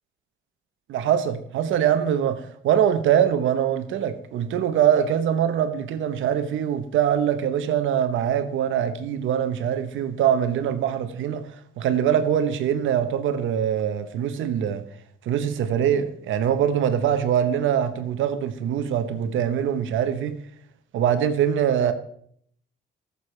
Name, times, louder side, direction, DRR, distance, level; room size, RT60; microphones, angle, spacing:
voice 1, 0.9-14.8 15.2-20.4 20.9-21.9, right 9 dB, 80° right, 0.9 m, -23 dB
14.0 x 6.9 x 3.3 m
cardioid pair, 90°, 20 cm